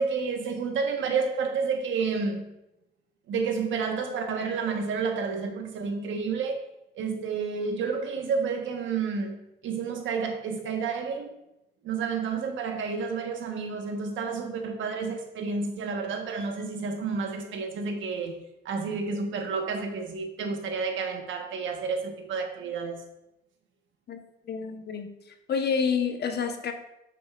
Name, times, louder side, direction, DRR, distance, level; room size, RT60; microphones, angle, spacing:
voice 1, 0.0-2.4 3.3-6.7 6.9-11.4 11.8-18.4 18.6-23.0, right 5 dB, 75° right, 1.3 m, -30 dB
voice 2, 24.1-25.1 25.5-26.7, left 6 dB, 55° left, 1.0 m, -28 dB
9.0 x 6.8 x 2.5 m
cardioid pair, 90°, 20 cm